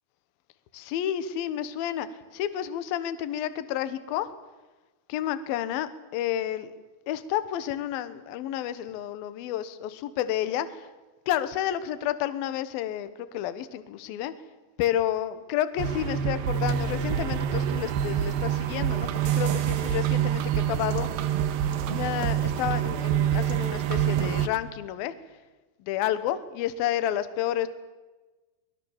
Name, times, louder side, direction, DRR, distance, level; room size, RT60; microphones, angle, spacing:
voice 1, 0.7-4.3 5.1-6.7 7.1-10.9 11.3-14.3 14.8-21.1 21.9-25.1 25.8-27.7, left 11 dB, 70° left, 12 dB, 2.5 m, -30 dB
Dark Atmospheric, 15.8-24.5, right 9 dB, 70° right, 2.4 m, -26 dB
23.5 x 21.5 x 7.3 m, 1.2 s
omnidirectional pair, 5.3 m